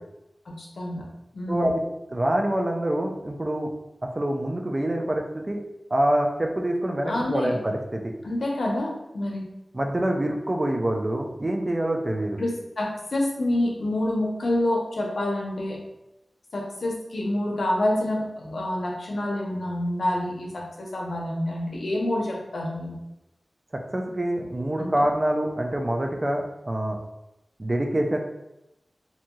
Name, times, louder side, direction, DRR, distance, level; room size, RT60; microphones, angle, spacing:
voice 1, 0.5-1.1 1.3-1.7 7.1-7.5 8.2-9.5 12.4-15.8 16.5-23.0 24.8-24.9, left 1 dB, 80° left, -1 dB, 0.6 m, -27 dB
voice 2, 1.5-1.8 2.1-3.7 4.1-5.6 5.9-8.1 9.7-12.4 23.7-27.0 27.6-28.2, right 1 dB, 30° right, 2 dB, 0.3 m, -26 dB
2.6 x 2.2 x 2.9 m, 0.92 s
wide cardioid pair, 90°, 0 cm